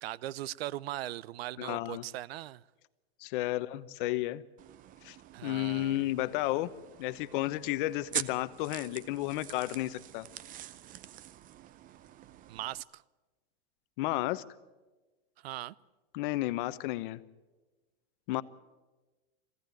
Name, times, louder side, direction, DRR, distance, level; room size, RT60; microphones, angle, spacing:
voice 1, 0.0-2.6 5.3-6.1 12.5-13.0 15.4-15.7, right 15 dB, 75° right, 0.7 m, -39 dB
voice 2, 1.6-2.0 3.2-4.4 5.0-5.2 5.4-6.7 7.0-10.3 14.0-14.4 16.1-17.2 18.3-18.4, left 16 dB, 55° left, 1.0 m, -32 dB
sound 1, 4.6-12.8, right 12 dB, 25° right, 0.6 m, -44 dB
23.0 x 16.5 x 9.2 m
supercardioid pair, 140°, 31 cm